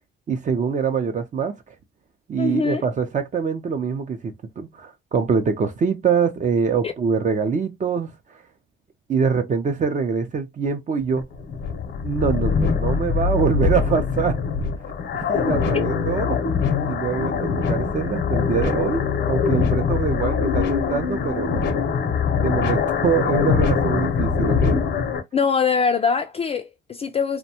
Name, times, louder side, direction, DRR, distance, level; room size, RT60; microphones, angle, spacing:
voice 1, 0.3-1.7 2.3-8.4 9.1-11.2 12.0-14.4 15.1-16.4 16.8-19.0 19.3-21.8 22.3-24.8, right 6 dB, 40° right, 0.5 m, -24 dB
voice 2, 2.4-2.8 6.8-6.9 25.3-27.4, left 5 dB, 30° left, 0.3 m, -22 dB
sound 1, 11.0-25.2, left 6 dB, 65° left, 0.7 m, -23 dB
2.6 x 2.2 x 2.7 m
cardioid pair, 90°, 20 cm